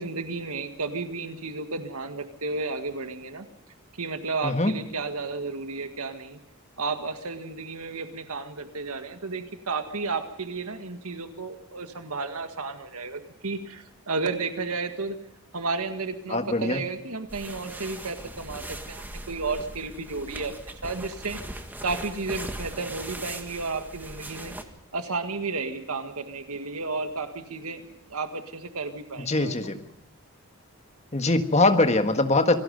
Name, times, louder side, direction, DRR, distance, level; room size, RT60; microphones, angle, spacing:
voice 1, 0.0-3.5 4.0-6.4 6.8-15.2 15.5-20.5 20.8-21.4 21.8-24.5 24.9-27.8 28.1-29.5, right 4 dB, 80° right, 7 dB, 1.8 m, -32 dB
voice 2, 16.3-16.8 29.3-29.8 31.1-32.6, left 2 dB, 30° left, 7 dB, 1.5 m, -22 dB
sound 1, 17.3-24.6, right 1 dB, 10° right, 1.6 m, -39 dB
26.5 x 19.0 x 5.3 m, 0.82 s
head